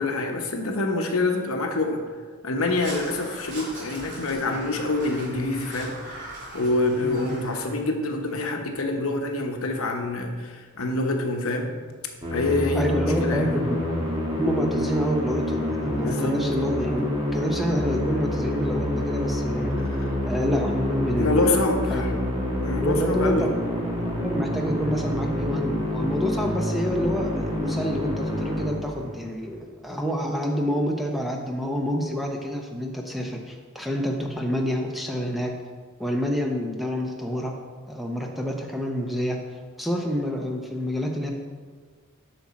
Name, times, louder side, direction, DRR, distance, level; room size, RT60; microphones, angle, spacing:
voice 1, 0.0-2.0 2.4-6.2 6.5-11.7 12.3-13.6 16.0-16.3 19.8-20.1 21.2-22.1 22.6-23.5, left 2 dB, 70° left, 3 dB, 0.9 m, -26 dB
Crow, 2.8-7.8, right 1 dB, 55° right, 2.5 m, -40 dB
voice 2, 7.0-7.4 12.7-19.8 20.2-21.4 21.9-22.0 22.8-23.5 24.0-35.5 36.0-37.5 37.9-39.4 39.8-41.3, equal, ahead, 1 dB, 0.6 m, -28 dB
Musical instrument, 12.2-29.3, left 1 dB, 25° right, 1.5 m, -27 dB
7.7 x 6.0 x 4.3 m, 1.5 s
head